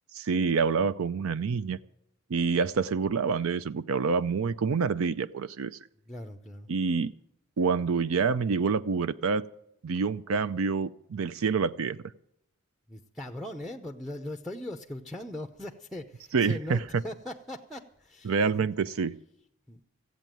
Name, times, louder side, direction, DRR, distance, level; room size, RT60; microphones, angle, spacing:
voice 1, 0.1-1.8 2.3-5.7 6.7-7.1 7.6-9.4 9.8-12.0 16.3-17.0 18.2-19.1, right 5 dB, 70° right, 15 dB, 0.5 m, -27 dB
voice 2, 6.1-6.7 10.4-10.5 12.9-18.3 18.6-18.7 19.7-19.9, left 1 dB, ahead, 5 dB, 0.6 m, -40 dB
15.5 x 8.2 x 9.0 m, 0.74 s
head